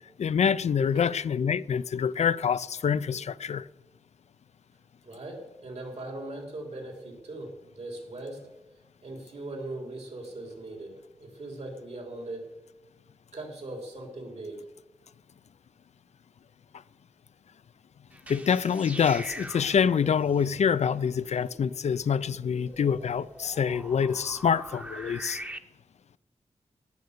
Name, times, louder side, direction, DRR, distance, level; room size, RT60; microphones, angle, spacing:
voice 1, 0.2-3.7 18.3-25.4, left 7 dB, 75° left, 0.4 m, -26 dB
voice 2, 0.8-1.2 5.0-8.4 9.0-12.5 13.3-14.6, right 2 dB, 70° right, 3.5 m, -40 dB
sound 1, 18.1-25.6, right 1 dB, 10° right, 0.8 m, -43 dB
18.5 x 6.7 x 6.7 m
wide cardioid pair, 100°, 12 cm